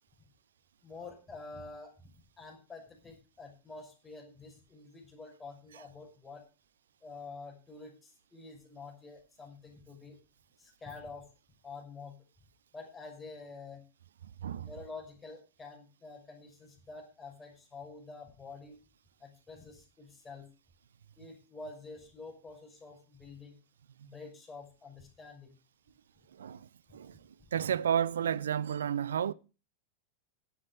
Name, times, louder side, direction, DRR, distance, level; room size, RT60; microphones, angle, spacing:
voice 1, 0.8-2.1 2.4-6.5 7.0-10.2 10.6-11.3 11.6-12.2 12.7-13.8 14.6-18.8 19.2-20.5 21.2-23.6 24.0-25.6 26.9-27.0, left 3 dB, 15° left, 6.0 m, -48 dB
voice 2, 27.5-29.3, right 8 dB, 65° right, 0.6 m, -31 dB
11.0 x 9.8 x 5.2 m
figure-of-eight pair, 90°, 0 cm